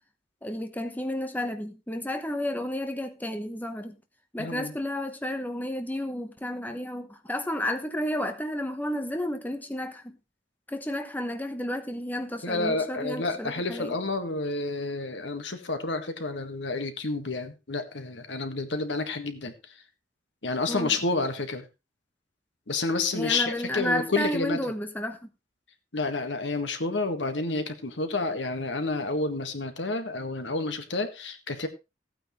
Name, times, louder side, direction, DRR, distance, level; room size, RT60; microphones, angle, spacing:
voice 1, 0.4-4.0 4.3-10.2 10.7-14.0 20.7-21.0 23.1-25.3, left 1 dB, 10° left, 1.1 m, -32 dB
voice 2, 4.4-4.7 12.4-19.5 20.4-21.6 22.7-24.6 25.9-31.7, left 3 dB, 80° left, 1.7 m, -30 dB
15.5 x 9.1 x 3.2 m
head